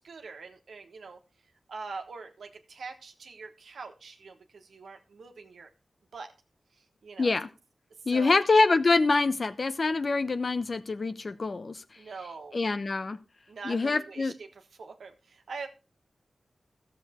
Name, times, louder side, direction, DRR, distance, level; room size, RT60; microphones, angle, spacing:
voice 1, 0.0-1.2 1.7-5.7 6.1-6.3 6.7-7.3 8.0-8.4 12.0-12.6 13.5-15.7, right 4 dB, 85° right, 5 dB, 1.3 m, -43 dB
voice 2, 8.1-11.8 12.5-13.2 13.6-14.3, left 3 dB, 60° left, 12 dB, 0.8 m, -25 dB
13.0 x 7.0 x 4.3 m, 0.32 s
cardioid pair, 40°, 0 cm